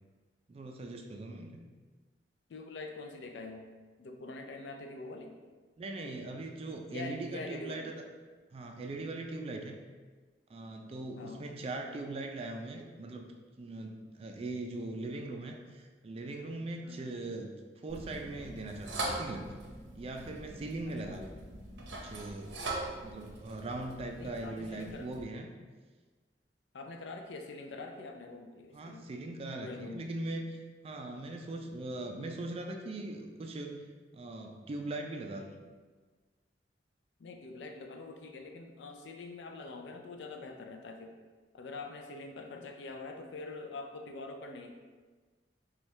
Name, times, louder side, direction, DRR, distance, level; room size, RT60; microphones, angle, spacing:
voice 1, 0.5-1.6 5.8-8.0 8.5-9.8 10.5-13.3 13.6-19.4 19.9-21.3 21.9-22.5 23.0-25.5 28.7-33.9 34.1-35.6, right 2 dB, 35° right, 3 dB, 0.3 m, -40 dB
voice 2, 2.5-3.6 4.0-5.3 6.9-7.9 11.2-11.5 16.8-17.1 21.0-21.2 24.2-25.1 26.7-29.1 29.6-30.1 37.2-41.1 41.5-44.8, left 3 dB, 75° left, 4 dB, 0.4 m, -44 dB
sound 1, 17.9-25.2, right 2 dB, 80° right, 0.7 m, -42 dB
4.4 x 2.3 x 3.2 m, 1.4 s
head